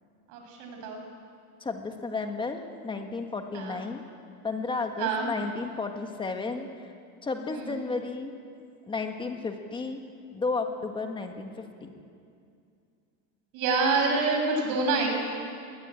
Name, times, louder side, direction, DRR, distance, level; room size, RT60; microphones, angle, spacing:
voice 1, 0.3-1.0 3.5-3.8 5.0-5.3 7.5-7.7 13.5-15.1, right 4 dB, 55° right, 2 dB, 6.6 m, -26 dB
voice 2, 1.6-4.0 4.4-6.9 7.2-8.3 8.9-10.0 10.3-11.9, left 4 dB, 15° left, 5 dB, 1.8 m, -33 dB
22.0 x 20.0 x 9.1 m, 2.4 s
cardioid pair, 160°, 38 cm